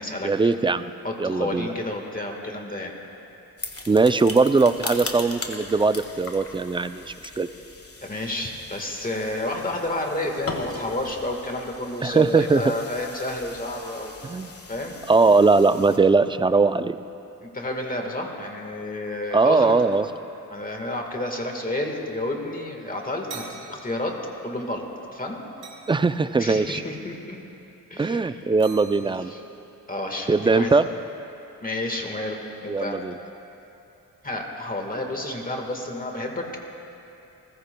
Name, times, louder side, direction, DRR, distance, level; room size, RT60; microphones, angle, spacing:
voice 1, 0.2-0.9 1.2-1.7 3.9-7.5 12.0-12.7 14.2-14.5 15.1-17.0 19.3-20.1 25.9-26.8 28.0-29.3 30.3-30.9 32.7-33.1, right 4 dB, 15° right, 11 dB, 0.3 m, -20 dB
voice 2, 1.0-2.9 8.0-14.1 14.7-15.0 17.4-19.7 20.5-24.1 24.4-24.8 25.1-25.4 26.4-27.4 27.9-28.3 29.3-29.4 29.9-30.7 31.6-33.0 34.2-36.4, left 1 dB, 25° left, 2 dB, 1.5 m, -30 dB
sound 1, 3.6-16.0, left 3 dB, 40° left, 1.5 m, -39 dB
sound 2, 23.3-24.5 24.8-25.1 25.6-26.1 27.9-28.1 28.6-29.8, right 4 dB, 85° right, 2.3 m, -44 dB
29.0 x 15.0 x 2.2 m, 2.8 s
cardioid pair, 100°, 36 cm